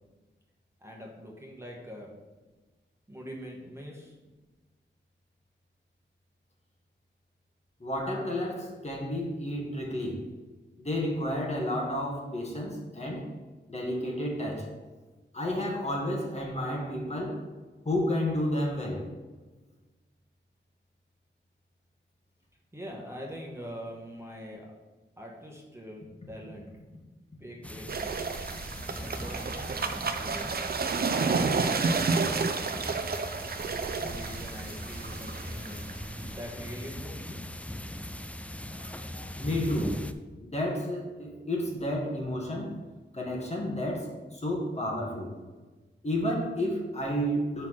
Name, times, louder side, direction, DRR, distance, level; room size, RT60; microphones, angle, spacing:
voice 1, 0.8-2.2 3.1-4.1 22.7-24.7 25.2-26.7 27.4-28.2 29.0-29.9 30.2-30.6 31.1-33.0 33.6-35.8 36.3-37.4, equal, 15° right, -2 dB, 1.2 m, -43 dB
voice 2, 7.8-10.2 10.8-13.3 13.7-14.7 15.3-17.5 17.8-19.1 38.7-40.1 40.4-42.8 43.1-45.3 46.0-47.7, left 1 dB, 35° left, -1 dB, 1.5 m, -31 dB
sound 1, 27.6-40.1, left 1 dB, 5° left, 0.3 m, -40 dB
sound 2, 27.9-36.8, right 4 dB, 50° right, 0.5 m, -31 dB
5.6 x 4.3 x 6.2 m, 1.2 s
wide cardioid pair, 110°, 19 cm